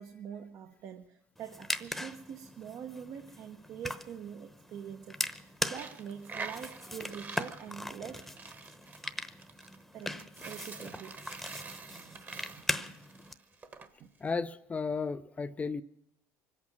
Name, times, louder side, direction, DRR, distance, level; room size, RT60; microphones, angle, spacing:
voice 1, 0.0-8.6 9.9-11.3 11.9-12.2 14.0-14.1, right 8 dB, 55° right, 6 dB, 0.9 m, -45 dB
Glasses casing, 1.4-13.3, left 1 dB, 5° left, 0.9 m, -40 dB
Coin (dropping), 5.6-13.9, right 4 dB, 30° right, 1.3 m, -46 dB
voice 2, 14.2-15.8, left 4 dB, 25° left, 9 dB, 0.5 m, -34 dB
24.5 x 8.6 x 5.9 m, 0.84 s
supercardioid pair, 100°, 6 cm